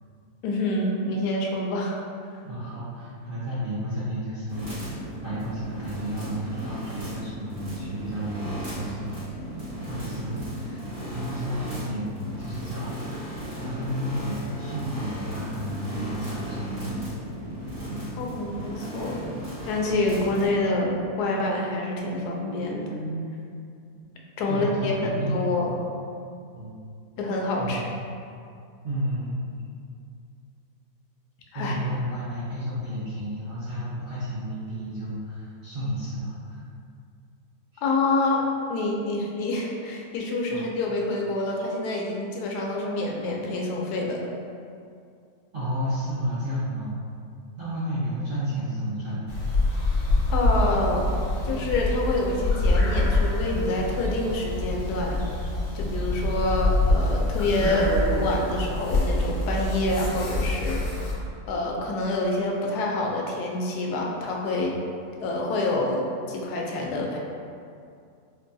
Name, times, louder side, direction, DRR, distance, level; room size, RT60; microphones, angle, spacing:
voice 1, 0.4-2.0 18.2-19.3 19.7-23.4 24.4-25.7 27.2-27.8 31.5-31.7 37.8-38.4 38.7-44.2 50.3-51.1 51.4-55.2 55.7-60.8 61.5-64.8 65.2-67.2, left 2 dB, 90° left, -1 dB, 1.1 m, -27 dB
voice 2, 2.4-9.1 9.9-17.1 17.8-18.1 19.4-19.5 24.5-25.5 26.5-26.7 27.6-27.9 28.8-29.6 31.5-36.6 37.7-37.8 40.5-40.7 45.5-47.0 47.6-49.4, equal, 55° right, -11 dB, 0.6 m, -32 dB
sound 1, 4.5-20.5, equal, 70° right, 2.1 m, -36 dB
sound 2, 49.3-61.1, left 2 dB, 50° left, 0.9 m, -25 dB
4.4 x 2.2 x 2.6 m, 2.4 s
omnidirectional pair, 1.6 m